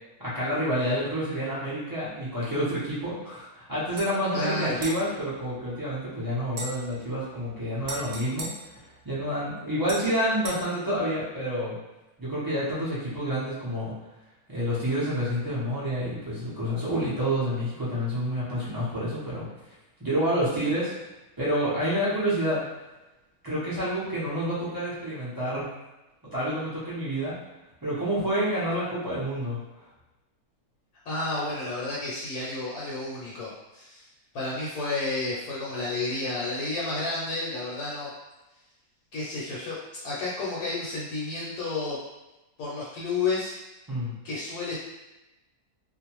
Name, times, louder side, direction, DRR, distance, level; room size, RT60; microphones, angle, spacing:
voice 1, 0.2-8.5 9.0-11.8 12.2-13.9 14.5-19.5 20.0-20.9 21.4-22.6 23.4-25.7 26.3-27.4 27.8-29.6 43.9-44.1, equal, 30° right, -10 dB, 0.4 m, -28 dB
sound 1, 3.9-4.1 4.8-6.0 6.5-9.4 9.9-10.6, right 2 dB, 65° right, 0.7 m, -40 dB
voice 2, 4.3-4.8 31.1-34.1 34.3-38.1 39.1-39.7 40.0-42.0 42.6-43.6 44.2-44.7, left 3 dB, 75° left, -6 dB, 1.1 m, -31 dB
2.5 x 2.2 x 2.9 m, 1.0 s
omnidirectional pair, 1.6 m